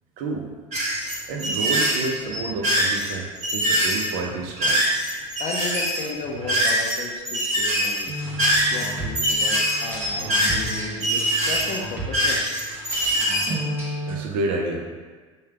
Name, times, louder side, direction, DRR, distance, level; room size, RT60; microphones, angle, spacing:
voice 1, 0.2-0.5 1.0-4.8 14.0-14.8, right 3 dB, 60° right, 1 dB, 0.6 m, -29 dB
sound 1, 0.7-7.0 7.3-13.5, right 1 dB, 40° right, 1.2 m, -23 dB
voice 2, 5.4-8.1 8.7-12.4, left 4 dB, 40° left, 0 dB, 0.5 m, -34 dB
sound 2, 8.1-14.1, right 1 dB, 15° right, 1.1 m, -33 dB
3.2 x 2.3 x 3.3 m, 1.4 s
hypercardioid pair, 80°, 17 cm